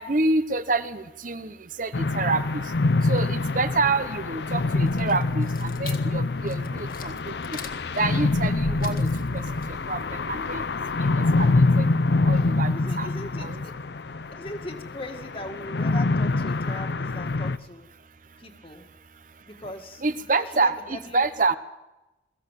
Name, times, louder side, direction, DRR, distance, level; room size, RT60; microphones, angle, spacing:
voice 1, 0.0-2.7 3.0-7.6 7.9-9.1 9.3-10.6 11.0-11.9 12.2-13.1 13.4-13.6 20.0-21.6, right 3 dB, 45° right, 12 dB, 1.0 m, -28 dB
sound 1, 1.9-17.6, left 3 dB, 65° left, 0.6 m, -25 dB
sound 2, 4.7-11.3, left 2 dB, 50° left, 2.0 m, -41 dB
voice 2, 12.7-13.7 14.3-17.9 18.4-18.9 19.5-20.0 20.3-21.2, left 1 dB, 30° left, 5 dB, 2.1 m, -39 dB
22.5 x 15.5 x 7.6 m, 1.0 s
head